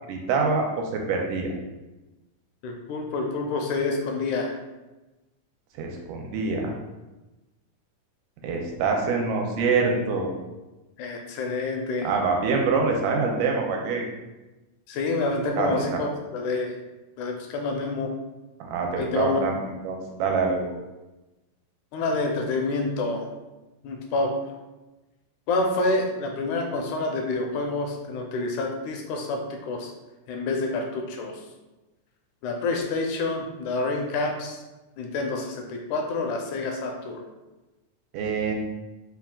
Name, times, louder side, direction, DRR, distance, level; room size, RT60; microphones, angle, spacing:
voice 1, 0.1-1.5 5.8-6.7 8.4-10.4 12.0-14.0 15.6-16.0 18.6-19.6 19.8-20.6 38.1-38.5, right 4 dB, 85° right, 1 dB, 2.1 m, -25 dB
voice 2, 2.6-4.6 11.0-12.1 14.9-16.7 17.2-18.1 18.9-19.7 21.9-23.3 23.8-24.3 25.5-29.9 30.3-31.4 32.4-34.6 35.0-37.2, left 3 dB, 80° left, 2 dB, 1.9 m, -28 dB
4.9 x 2.3 x 3.6 m, 1.1 s
omnidirectional pair, 3.6 m